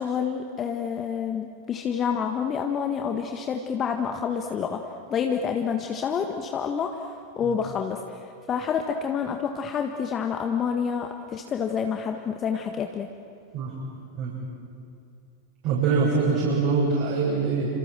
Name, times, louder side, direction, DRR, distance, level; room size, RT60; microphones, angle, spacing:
voice 1, 0.0-4.8 5.1-8.0 8.5-13.1, left 7 dB, 25° left, 5 dB, 1.6 m, -28 dB
voice 2, 15.6-17.7, right 4 dB, 40° right, -5 dB, 7.7 m, -24 dB
28.5 x 26.5 x 7.8 m, 2.5 s
figure-of-eight pair, 90°, 0 cm